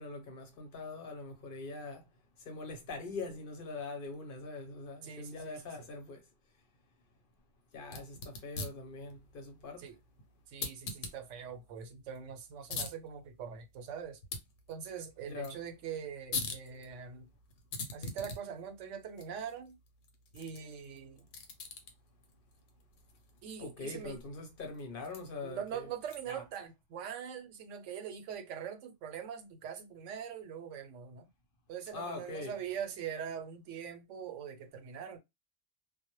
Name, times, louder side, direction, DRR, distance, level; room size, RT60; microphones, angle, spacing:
voice 1, 0.0-2.1 2.4-6.2 7.7-9.9 15.2-15.6 23.6-25.9 26.3-26.4 31.9-32.6, left 3 dB, 55° left, 0.8 m, -43 dB
voice 2, 5.0-5.6 9.8-10.0 10.5-14.2 14.7-17.3 17.9-19.7 20.3-21.3 23.4-24.2 25.4-31.3 31.7-35.2, right 8 dB, 90° right, 0.9 m, -42 dB
sound 1, 7.8-26.5, left 4 dB, 85° left, 1.0 m, -46 dB
2.1 x 2.0 x 2.9 m
omnidirectional pair, 1.2 m